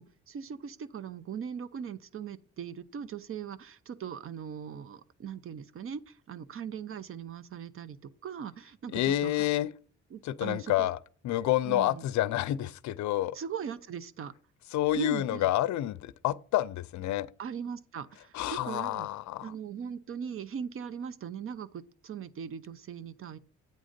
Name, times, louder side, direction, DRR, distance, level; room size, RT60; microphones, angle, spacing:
voice 1, 0.0-9.5 10.1-10.9 11.6-12.1 13.3-14.3 14.9-15.5 17.4-19.1 19.4-23.4, right 7 dB, 45° right, 0.6 m, -40 dB
voice 2, 8.9-9.7 10.2-11.0 11.2-13.4 14.7-17.3 18.3-19.5, left 14 dB, 70° left, 0.5 m, -29 dB
8.5 x 3.8 x 5.1 m
cardioid pair, 90°, 30 cm